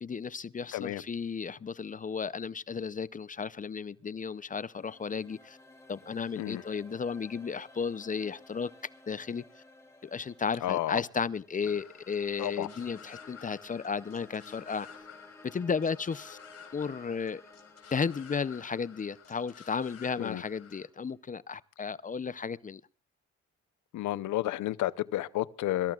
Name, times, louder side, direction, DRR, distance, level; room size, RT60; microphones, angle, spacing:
voice 1, 0.0-5.6 5.9-8.7 9.1-9.4 10.0-14.9 15.4-16.4 16.7-17.4 17.9-22.8, left 5 dB, 25° left, 0.5 m, -34 dB
voice 2, 0.7-1.0 6.4-6.6 10.6-11.0 12.4-12.7 20.2-20.4 23.9-25.9, left 14 dB, 75° left, 0.7 m, -31 dB
sound 1, 4.1-21.2, left 2 dB, 10° left, 3.5 m, -56 dB
sound 2, 11.7-20.9, left 8 dB, 50° left, 4.3 m, -52 dB
25.0 x 14.0 x 2.4 m
cardioid pair, 90°, 30 cm